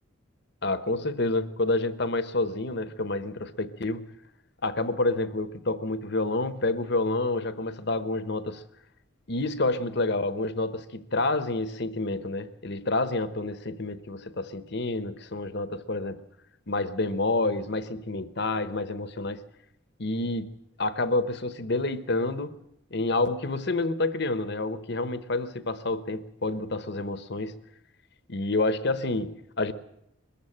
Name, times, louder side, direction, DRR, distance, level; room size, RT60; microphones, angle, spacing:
voice 1, 0.6-4.0 4.6-8.6 9.3-16.2 16.7-19.4 20.0-20.5 20.8-22.6 22.9-27.6 28.3-29.7, left 2 dB, 50° left, 1.0 m, -28 dB
22.0 x 14.5 x 8.8 m
head